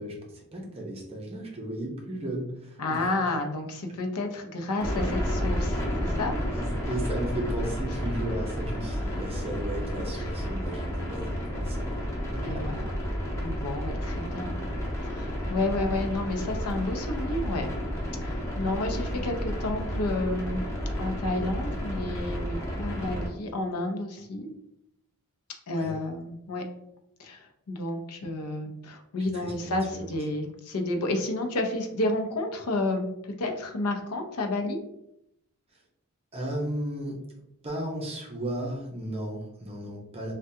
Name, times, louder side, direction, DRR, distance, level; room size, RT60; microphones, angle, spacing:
voice 1, 0.0-3.3 3.9-4.0 6.5-12.0 12.3-12.6 19.1-19.2 25.7-26.0 29.2-30.1 36.3-37.2 37.6-40.3, right 1 dB, 25° right, -1 dB, 0.7 m, -35 dB
voice 2, 2.8-6.4 10.1-10.3 12.4-12.9 13.4-14.5 15.0-17.7 18.2-20.6 21.0-24.5 25.7-26.6 27.2-33.1 33.4-34.8, left 2 dB, 75° left, 4 dB, 0.5 m, -31 dB
sound 1, 4.8-23.3, equal, 15° left, 0.7 m, -31 dB
3.4 x 2.2 x 2.7 m, 0.79 s
head